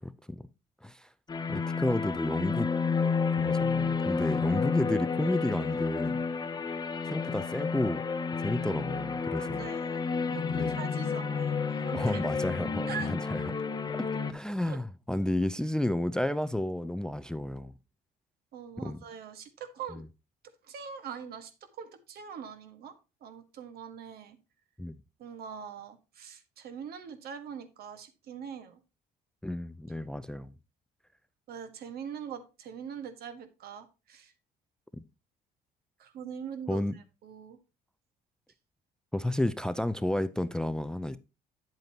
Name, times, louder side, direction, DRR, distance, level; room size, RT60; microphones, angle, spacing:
sound 1, 1.3-14.3, left 5 dB, 25° left, 0.8 m, -31 dB
voice 1, 1.5-2.7 3.3-6.2 7.0-8.0 8.4-9.7 10.5-10.8 11.9-13.4 13.9-17.7 18.8-19.0 19.9-20.0 24.8-25.0 29.4-30.5 36.7-36.9 39.1-41.2, left 1 dB, 5° left, 0.4 m, -31 dB
voice 2, 9.4-12.2 12.9-13.1 14.6-14.8 18.5-20.0 20.6-24.4 25.2-28.8 31.5-34.3 36.0-37.6, right 7 dB, 65° right, 1.5 m, -43 dB
9.0 x 7.9 x 2.8 m
cardioid pair, 110°, 17 cm